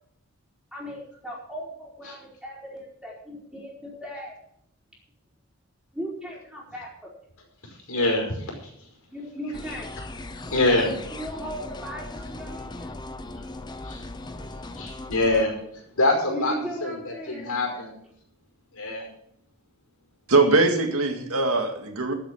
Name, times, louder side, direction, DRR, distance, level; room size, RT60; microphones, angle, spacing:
voice 1, 0.7-4.3 5.9-7.1 9.1-9.9 10.7-12.9 16.3-17.5, equal, 5° right, -4 dB, 4.7 m, -37 dB
voice 2, 7.6-8.9 9.7-9.8 10.4-10.9 13.4-13.5 13.8-16.5 16.8-17.9 18.7-19.1, left 2 dB, 80° left, 1 dB, 5.2 m, -26 dB
sound 1, 9.5-15.4, left 2 dB, 20° left, 0.7 m, -38 dB
voice 3, 20.3-22.1, right 3 dB, 75° right, 5 dB, 2.0 m, -21 dB
13.0 x 8.0 x 7.5 m, 0.70 s
head